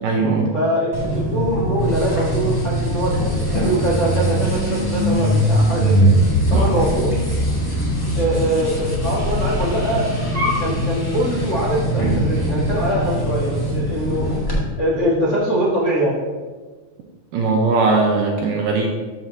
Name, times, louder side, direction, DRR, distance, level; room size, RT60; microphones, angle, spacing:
voice 1, 0.0-0.5 6.5-6.7 17.3-18.9, right 3 dB, 75° right, 0 dB, 2.4 m, -19 dB
voice 2, 0.5-6.1 6.5-7.2 8.1-14.4 14.8-16.2, right 1 dB, 90° left, -6 dB, 0.6 m, -23 dB
sound 1, 0.9-14.6, equal, 25° left, 0.5 m, -21 dB
13.0 x 7.2 x 2.7 m, 1.4 s
omnidirectional pair, 4.2 m